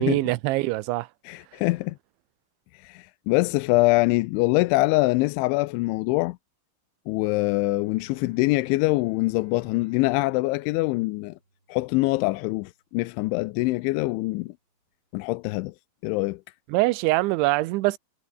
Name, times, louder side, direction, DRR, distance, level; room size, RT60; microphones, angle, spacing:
voice 1, 0.0-1.1 16.7-18.0, right 19 dB, 85° right, 3.1 m, -23 dB
voice 2, 1.3-2.0 2.7-6.4 7.1-11.4 11.7-14.5 15.1-15.7 16.0-16.4, left 22 dB, 85° left, 3.0 m, -24 dB
Bowed string instrument, 7.5-12.8, right 2 dB, 25° right, 7.2 m, -57 dB
omnidirectional pair, 5.4 m